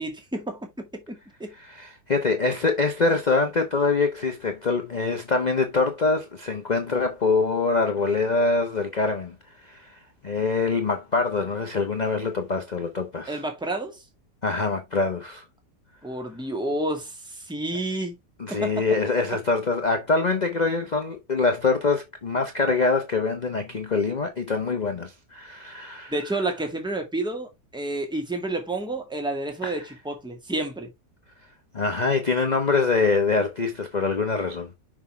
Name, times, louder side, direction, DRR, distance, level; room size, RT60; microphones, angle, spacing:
voice 1, 0.0-1.5 13.3-14.0 16.0-18.2 18.5-18.8 26.1-30.9, right 2 dB, 5° right, 1.9 m, -30 dB
voice 2, 1.6-13.4 14.4-15.4 18.4-26.1 29.6-29.8 31.7-34.7, left 4 dB, 35° left, 0.9 m, -24 dB
6.3 x 5.6 x 3.4 m
omnidirectional pair, 1.7 m